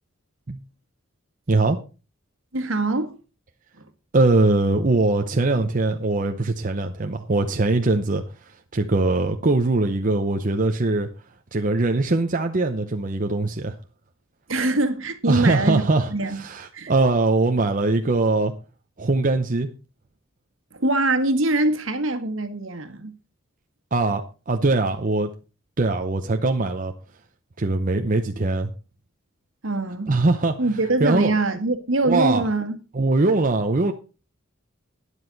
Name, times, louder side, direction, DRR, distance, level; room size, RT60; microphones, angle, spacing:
voice 1, 2.5-3.1 14.5-15.8 16.1-16.4 16.7-16.9 20.7-23.1 29.6-30.1 30.6-32.8, right 2 dB, 70° right, 1.7 m, -23 dB
voice 2, 4.1-8.2 8.7-11.1 11.5-13.8 15.3-18.5 19.0-19.7 23.9-25.3 25.8-26.9 27.6-28.7 30.1-30.5 31.0-31.3 32.0-32.4 32.9-33.9, right 2 dB, 40° right, 0.7 m, -21 dB
12.5 x 9.9 x 4.0 m
head